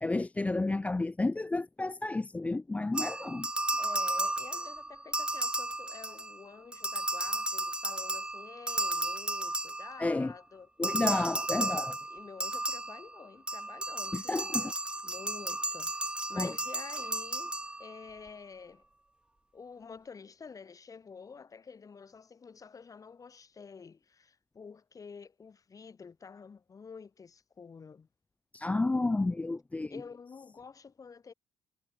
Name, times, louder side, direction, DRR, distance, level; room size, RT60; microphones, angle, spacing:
voice 1, 0.0-3.5 10.0-10.3 10.8-12.0 14.1-14.7 16.4-16.5 28.5-30.0, left 2 dB, 15° left, 0.5 m, -31 dB
sound 1, 2.9-6.4 6.7-10.2 10.8-18.1, right 1 dB, 10° right, 1.1 m, -34 dB
voice 2, 3.8-10.7 12.1-14.7 15.0-18.8 19.5-28.1 29.9-31.3, left 5 dB, 35° left, 3.2 m, -49 dB
supercardioid pair, 75°, 9 cm